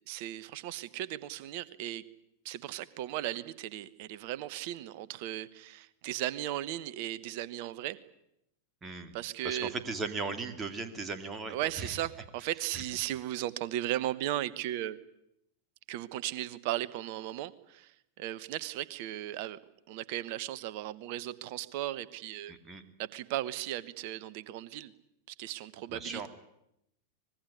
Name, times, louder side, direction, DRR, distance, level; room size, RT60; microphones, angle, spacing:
voice 1, 0.1-2.0 2.4-8.0 9.1-9.7 11.5-15.0 15.9-19.6 19.9-22.5 23.0-24.9 25.3-26.3, right 13 dB, 45° right, 18 dB, 1.2 m, -36 dB
voice 2, 8.8-9.1 9.4-12.0 12.7-12.8 22.5-22.8 25.9-26.3, right 4 dB, 20° right, 8 dB, 2.7 m, -37 dB
24.5 x 20.5 x 9.7 m, 0.80 s
figure-of-eight pair, 90°, 0 cm